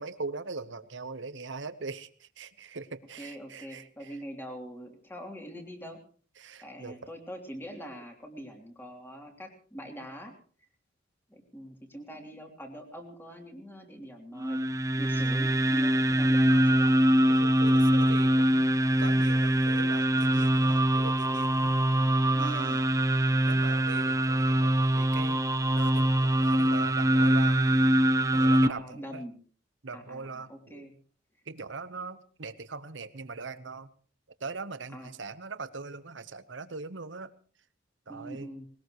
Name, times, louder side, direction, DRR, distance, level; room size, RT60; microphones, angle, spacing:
voice 1, 0.0-4.2 6.4-7.0 16.5-16.7 17.3-21.8 22.4-22.8 23.5-27.6 28.3-29.2 29.8-30.8 31.5-33.9 34.4-37.3 38.1-38.5, right 4 dB, 70° right, 13 dB, 1.1 m, -41 dB
voice 2, 3.2-6.0 6.6-10.3 11.3-14.6 15.0-17.0 21.8-22.8 28.6-29.3 29.9-30.9 34.9-35.1 38.1-38.7, equal, 10° left, 2 dB, 3.2 m, -43 dB
sound 1, 14.4-28.7, right 1 dB, 15° right, 0.6 m, -24 dB
20.5 x 19.0 x 3.2 m, 0.42 s
head